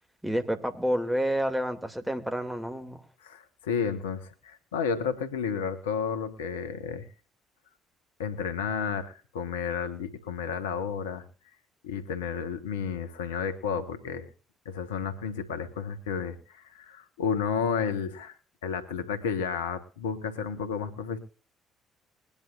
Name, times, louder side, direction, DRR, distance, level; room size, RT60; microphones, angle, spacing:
voice 1, 0.2-3.0, equal, 5° right, 7 dB, 2.6 m, -29 dB
voice 2, 3.2-7.1 8.2-11.2 11.8-14.3 14.6-18.4 18.6-21.2, left 6 dB, 85° left, 9 dB, 1.3 m, -32 dB
22.0 x 10.5 x 2.5 m, 0.39 s
hypercardioid pair, 50°, 0 cm